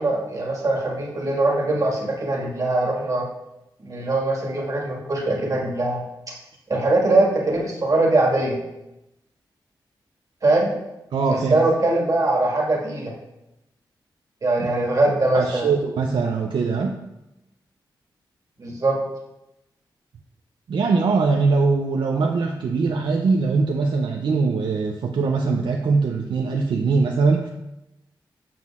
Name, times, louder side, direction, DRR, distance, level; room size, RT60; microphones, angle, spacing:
voice 1, 0.0-3.2 3.8-6.0 6.7-8.6 10.4-10.7 11.3-13.1 14.4-15.7 18.6-19.0, right 2 dB, 45° right, -2 dB, 1.8 m, -21 dB
voice 2, 11.1-11.7 14.6-14.7 15.3-17.0 20.7-27.5, right 4 dB, 75° right, 2 dB, 0.5 m, -22 dB
7.4 x 6.0 x 2.4 m, 0.91 s
cardioid pair, 75°, 8 cm